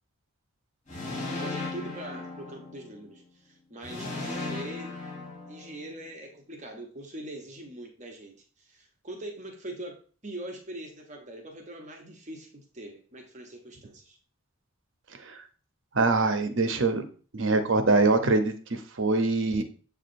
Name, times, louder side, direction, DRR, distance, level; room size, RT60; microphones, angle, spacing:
sound 1, 0.9-3.1 3.8-6.0, left 2 dB, 35° left, 3.1 m, -36 dB
voice 1, 1.4-4.9 5.5-10.0 10.2-14.1, right 1 dB, 35° right, 2 dB, 0.9 m, -42 dB
voice 2, 15.9-17.0 17.3-19.6, right 3 dB, 60° right, 8 dB, 0.8 m, -24 dB
7.4 x 4.8 x 2.6 m, 0.41 s
head